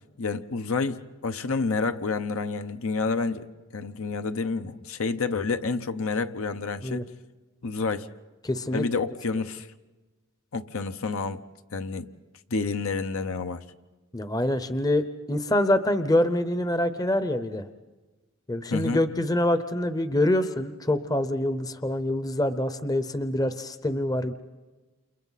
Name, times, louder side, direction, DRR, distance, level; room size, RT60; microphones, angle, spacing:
voice 1, 0.2-7.1 7.6-8.1 8.7-9.7 10.5-11.4 11.7-12.1 12.5-13.6 18.7-19.0, left 4 dB, 70° left, 0.8 m, -29 dB
voice 2, 8.4-8.9 14.1-17.7 18.5-24.3, left 1 dB, 15° left, 0.7 m, -25 dB
29.5 x 29.0 x 4.1 m
head